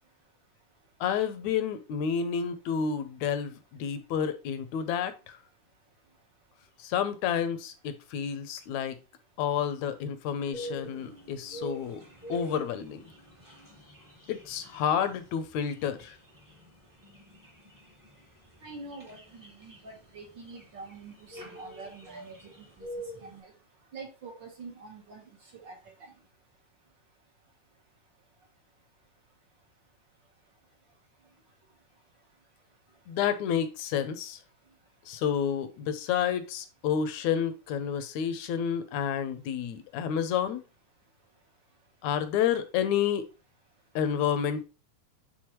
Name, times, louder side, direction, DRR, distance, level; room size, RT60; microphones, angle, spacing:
voice 1, 1.0-5.4 6.8-9.0 9.4-12.0 12.3-13.0 14.3-16.2 33.1-34.4 35.1-40.6 42.0-43.3 44.0-44.6, left 8 dB, 75° left, 2.0 m, -30 dB
sound 1, 10.5-23.4, right 1 dB, 15° right, 0.7 m, -45 dB
voice 2, 18.6-22.9 23.2-23.5 23.9-25.2 25.5-26.1, right 3 dB, 50° right, 1.4 m, -46 dB
9.6 x 4.0 x 3.0 m
omnidirectional pair, 3.5 m